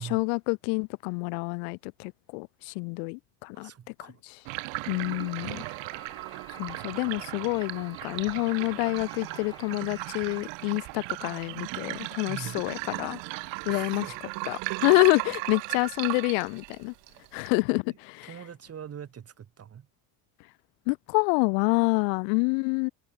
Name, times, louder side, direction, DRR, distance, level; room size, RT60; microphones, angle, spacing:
voice 1, 0.0-3.7 4.0-4.1 4.9-5.6 6.5-13.2 13.7-14.1 14.5-16.9 17.3-18.3 20.9-22.9, left 40 dB or more, 75° left, 0.6 m, -27 dB
voice 2, 3.5-4.2 12.2-12.6 13.7-14.2 17.9-19.9, right 8 dB, 30° right, 2.0 m, -43 dB
sound 1, 4.4-17.5, right 26 dB, 60° right, 0.9 m, -36 dB
sound 2, 4.9-10.5, left 3 dB, 10° left, 1.1 m, -53 dB
supercardioid pair, 110°, 49 cm